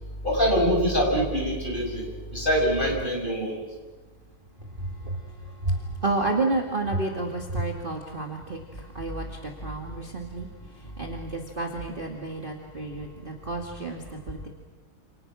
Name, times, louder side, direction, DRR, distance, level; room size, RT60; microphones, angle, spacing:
voice 1, 0.2-2.0 2.3-3.5, equal, 20° left, -1 dB, 7.3 m, -24 dB
voice 2, 4.8-14.5, right 2 dB, 25° right, 1 dB, 2.2 m, -31 dB
29.0 x 29.0 x 6.2 m, 1.3 s
omnidirectional pair, 2.3 m